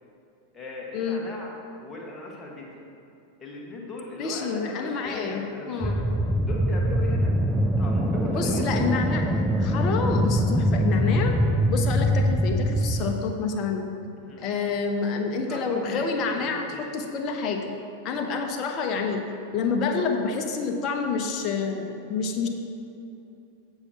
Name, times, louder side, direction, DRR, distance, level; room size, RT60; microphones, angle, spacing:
voice 1, 0.5-2.8 3.4-6.1 6.4-7.3 7.8-8.8 12.9-13.1 14.1-14.7 15.5-16.8, left 2 dB, 15° left, -3 dB, 1.7 m, -38 dB
voice 2, 4.2-6.0 8.3-11.4 11.7-13.9 14.4-17.8 18.0-19.2 19.5-22.5, left 5 dB, 35° left, 4 dB, 0.9 m, -28 dB
sound 1, 5.8-13.1, equal, 5° right, 0.4 m, -23 dB
16.0 x 5.7 x 3.0 m, 2.8 s
figure-of-eight pair, 90°, 0 cm